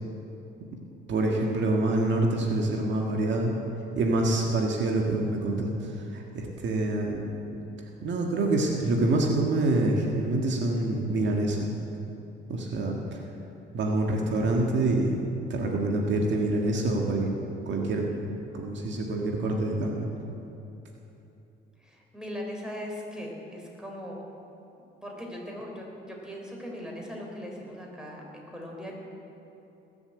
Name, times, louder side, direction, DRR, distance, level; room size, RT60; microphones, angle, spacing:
voice 1, 1.1-3.5 4.0-7.2 8.0-11.7 12.5-13.0 13.7-15.2 15.5-17.3 17.7-20.1, right 2 dB, 65° right, 0 dB, 1.7 m, -26 dB
voice 2, 21.8-24.2 25.0-28.9, equal, 5° right, -1 dB, 3.8 m, -39 dB
19.5 x 7.2 x 8.1 m, 2.9 s
cardioid pair, 90°, 20 cm